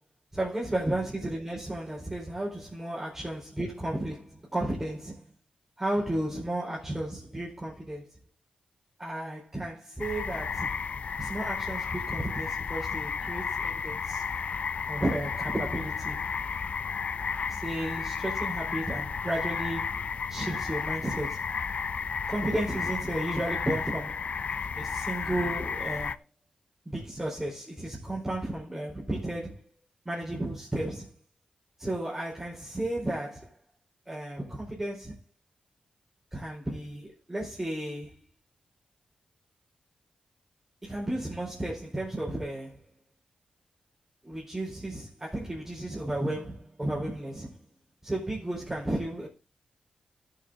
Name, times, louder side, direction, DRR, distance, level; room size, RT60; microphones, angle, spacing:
voice 1, 0.3-5.2 5.8-8.1 9.0-10.8 11.2-14.2 14.9-16.2 17.5-20.0 20.3-21.5 22.3-24.3 24.7-26.2 26.8-29.7 30.0-31.1 31.8-33.5 34.1-35.2 36.3-38.1 40.8-42.8 44.2-47.6 48.0-49.3, right 1 dB, 15° right, 4.7 m, -33 dB
sound 1, 10.0-26.2, left 6 dB, 60° left, 0.5 m, -33 dB
13.5 x 7.4 x 4.0 m
cardioid pair, 65°, 2 cm